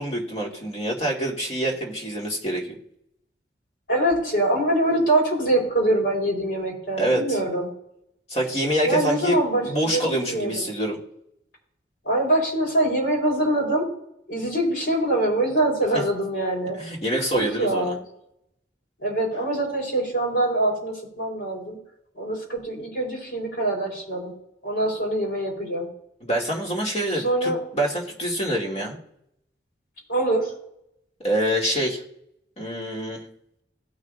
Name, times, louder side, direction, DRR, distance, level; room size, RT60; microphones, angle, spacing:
voice 1, 0.0-2.8 7.0-7.4 8.3-11.0 16.8-17.9 26.2-29.0 31.2-32.0 32.6-33.3, right 1 dB, 35° left, -1 dB, 2.4 m, -26 dB
voice 2, 3.9-7.7 8.8-9.6 9.9-10.7 12.0-13.9 14.3-16.8 17.3-18.0 19.0-21.8 22.1-24.3 24.6-25.9 27.1-27.6 30.1-30.5, right 1 dB, 65° left, -2 dB, 4.3 m, -24 dB
17.5 x 6.3 x 2.6 m, 0.76 s
head